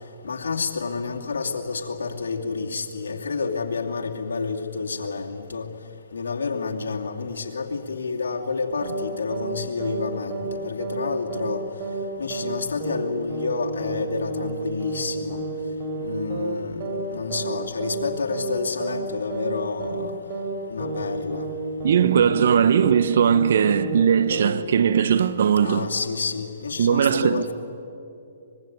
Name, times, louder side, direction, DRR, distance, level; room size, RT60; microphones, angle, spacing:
voice 1, 0.2-5.7 6.1-11.6 12.2-15.4 16.0-20.1 20.7-21.5 21.8-22.4 25.6-27.5, left 4 dB, 85° left, 2.7 m, -29 dB
sound 1, 8.8-9.1 9.3-9.6 9.8-10.1 10.3-10.6 10.8-11.1 11.3-11.6 11.8-12.1 12.3-12.6 12.8-13.1 13.3-13.6 13.8-14.1 14.3-14.6 14.8-15.1 15.3-15.6 15.8-16.1 16.3-16.6 16.8-17.1 17.3-17.6 17.8-18.1 18.3-18.6 18.8-19.1 19.3-19.6 19.8-20.1 20.3-20.6 20.8-21.1 21.3-21.6 21.8-22.1 22.3-22.6 22.8-23.1 23.3-23.6 23.8-24.1 24.3-24.6, right 3 dB, 40° right, 5.5 m, -30 dB
voice 2, 21.8-25.9 26.8-27.4, right 8 dB, 65° right, 1.1 m, -19 dB
25.0 x 22.0 x 9.3 m
hypercardioid pair, 145°, 0 cm